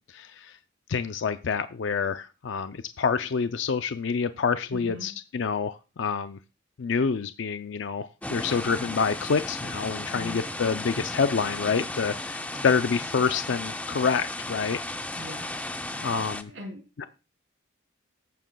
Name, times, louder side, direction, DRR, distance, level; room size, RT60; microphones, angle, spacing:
voice 1, 0.1-0.6 0.9-6.4 6.8-14.8 16.0-16.5, left 5 dB, 65° left, 10 dB, 0.4 m, -27 dB
voice 2, 4.7-5.1 10.1-10.6 12.4-13.1 15.2-15.6 16.5-16.8, equal, 80° right, -1 dB, 4.1 m, -42 dB
sound 1, 8.2-16.4, left 2 dB, 5° left, 0.5 m, -35 dB
18.0 x 9.1 x 2.3 m, 0.29 s
head